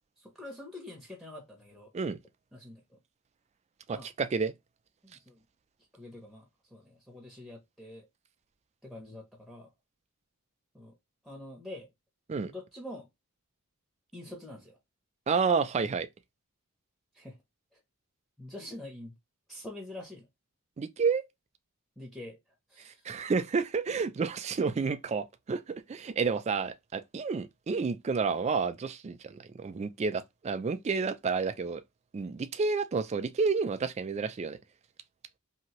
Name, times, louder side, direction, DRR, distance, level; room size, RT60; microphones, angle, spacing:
voice 1, 0.2-1.9 2.5-3.0 3.9-4.1 5.0-5.4 5.9-8.1 8.8-9.7 10.7-10.9 11.2-11.9 12.4-13.1 14.1-14.8 17.1-17.4 17.7-17.8 18.4-19.1 19.5-20.3 22.0-22.4 22.7-23.1, left 1 dB, ahead, 0.7 m, -45 dB
voice 2, 3.9-4.5 12.3-12.5 15.3-16.1 20.8-21.2 23.0-31.8 32.1-34.6, right 5 dB, 30° right, 0.3 m, -30 dB
2.8 x 2.6 x 2.9 m
head